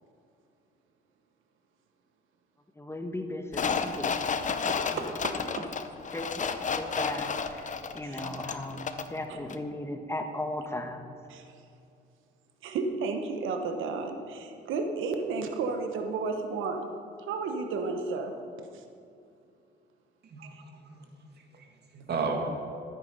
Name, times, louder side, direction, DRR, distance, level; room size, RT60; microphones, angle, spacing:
voice 1, 2.8-4.3 4.6-5.0 5.6-5.7 6.1-11.0, left 1 dB, 15° left, 5 dB, 1.1 m, -37 dB
sound 1, 3.5-9.2 9.5-9.6, left 5 dB, 40° left, 0.8 m, -32 dB
voice 2, 4.7-5.7 8.0-8.2 9.3-9.4 11.3-11.5 12.6-16.9 17.2-18.8 20.5-20.6, right 4 dB, 85° right, 5 dB, 1.0 m, -33 dB
voice 3, 20.2-21.7 21.9-22.4, right 5 dB, 55° right, 2 dB, 2.0 m, -35 dB
13.0 x 8.9 x 5.4 m, 2.5 s
cardioid pair, 90°, 20 cm